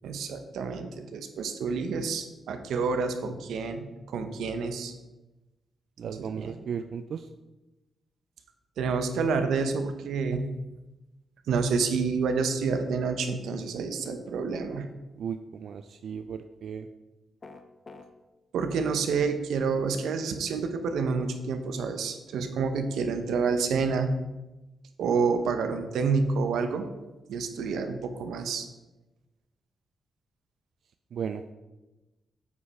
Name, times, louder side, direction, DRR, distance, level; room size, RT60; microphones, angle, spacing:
voice 1, 0.0-4.9 6.0-6.6 8.8-10.4 11.5-14.9 18.5-24.1 25.0-26.8 27.3-28.7, right 5 dB, 90° right, 7 dB, 0.9 m, -28 dB
voice 2, 6.0-7.3 15.2-16.9 31.1-31.5, right 7 dB, 55° right, 8 dB, 0.3 m, -35 dB
sound 1, 17.4-18.1, left 3 dB, 25° left, 0.6 m, -45 dB
8.1 x 5.3 x 4.8 m, 1.1 s
wide cardioid pair, 170°, 0 cm